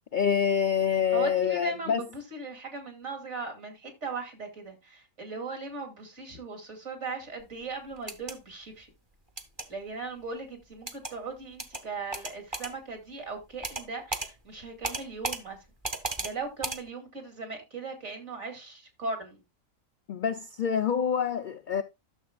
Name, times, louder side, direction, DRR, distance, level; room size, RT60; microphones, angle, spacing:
voice 1, 0.1-2.0 20.1-21.8, left 8 dB, 70° left, 0.4 m, -26 dB
voice 2, 1.1-8.9 9.7-15.6 16.2-19.4, right 3 dB, 55° right, 2.7 m, -38 dB
sound 1, 8.0-8.3 9.4-9.7 10.9-11.1 11.6-11.8 12.1-12.7 13.6-13.9 14.1-14.3 14.8-15.4 15.8-16.3 16.6-16.8, right 2 dB, 25° right, 0.9 m, -34 dB
12.5 x 6.8 x 2.3 m
omnidirectional pair, 1.4 m